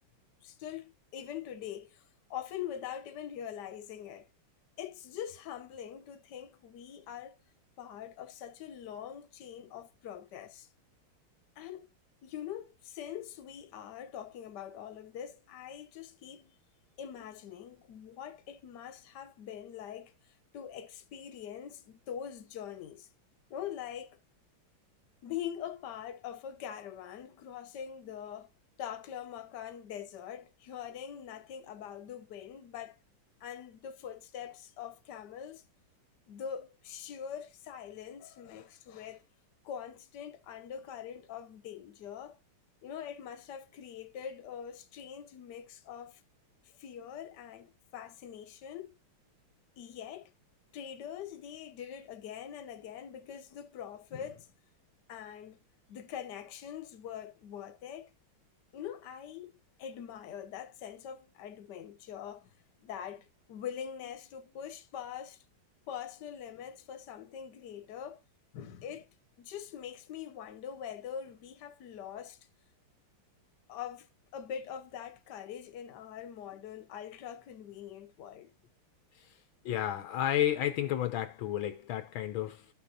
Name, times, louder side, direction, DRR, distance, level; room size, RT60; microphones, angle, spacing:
voice 1, 0.4-4.3 4.8-7.4 7.8-10.7 11.6-11.9 12.2-16.5 17.0-23.1 23.5-24.2 25.2-28.5 28.8-33.0 33.4-35.6 36.3-39.2 39.6-42.4 42.8-46.2 46.6-49.0 49.8-50.3 50.7-54.5 55.1-55.6 55.9-58.1 58.7-59.5 59.8-65.4 65.9-68.2 68.5-69.1 69.4-72.4 73.7-78.5, left 9 dB, 60° left, 1.4 m, -43 dB
voice 2, 79.6-82.7, left 12 dB, 80° left, 1.5 m, -32 dB
13.0 x 5.8 x 2.8 m
omnidirectional pair, 2.3 m